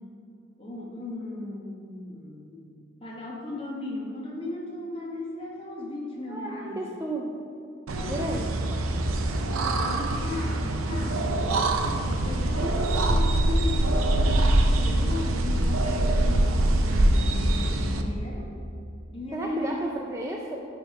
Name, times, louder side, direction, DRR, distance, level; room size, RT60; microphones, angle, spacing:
voice 1, 0.6-2.7 3.0-6.9 7.9-8.3 9.4-18.5 19.1-19.9, left 2 dB, 25° left, -4 dB, 1.3 m, -36 dB
voice 2, 6.3-7.2 8.1-8.5 19.3-20.6, right 1 dB, 15° right, -1 dB, 0.4 m, -33 dB
sound 1, 7.9-18.0, right 1 dB, 90° right, 0.6 m, -24 dB
9.9 x 3.6 x 4.8 m, 2.6 s
head